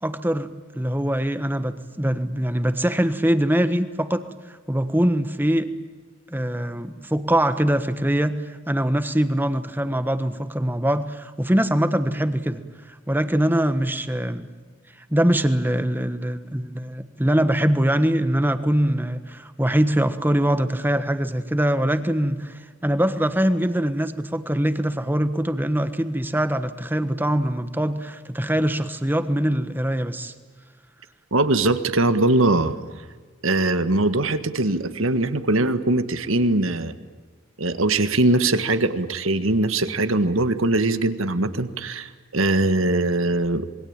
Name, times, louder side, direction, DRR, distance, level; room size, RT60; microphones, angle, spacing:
voice 1, 0.0-5.7 6.3-14.5 15.1-30.3, right 1 dB, 10° right, 10 dB, 1.3 m, -23 dB
voice 2, 31.3-32.8 33.4-37.0 37.6-43.7, right 2 dB, 80° right, 10 dB, 1.7 m, -21 dB
27.0 x 22.0 x 8.9 m, 1.4 s
head